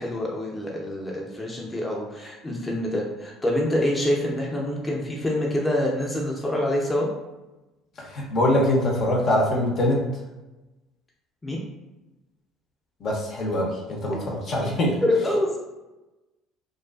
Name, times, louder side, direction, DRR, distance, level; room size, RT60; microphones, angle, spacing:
voice 1, 0.0-7.1 11.4-11.6 14.1-14.3 15.0-15.6, left 1 dB, 15° left, -3 dB, 0.6 m, -26 dB
voice 2, 8.0-10.0 13.0-14.9, left 1 dB, 50° left, -2 dB, 0.7 m, -23 dB
2.4 x 2.4 x 2.3 m, 1.0 s
supercardioid pair, 75°, 0 cm